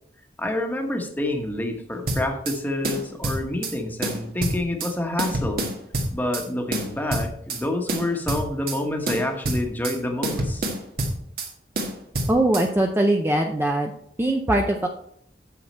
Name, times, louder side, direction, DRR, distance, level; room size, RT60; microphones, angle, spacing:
voice 1, 0.4-5.7 6.1-10.6, left 1 dB, 10° left, 3 dB, 1.2 m, -28 dB
sound 1, 2.1-2.6 2.8-3.7 4.0-4.9 5.2-6.5 6.7-7.6 7.9-8.8 9.1-10.0 10.2-11.5 11.8-12.7, right 1 dB, 60° right, 1.5 m, -27 dB
voice 2, 12.3-13.9 14.2-14.9, right 1 dB, 15° right, 3 dB, 0.6 m, -21 dB
9.4 x 6.3 x 4.3 m, 0.69 s
head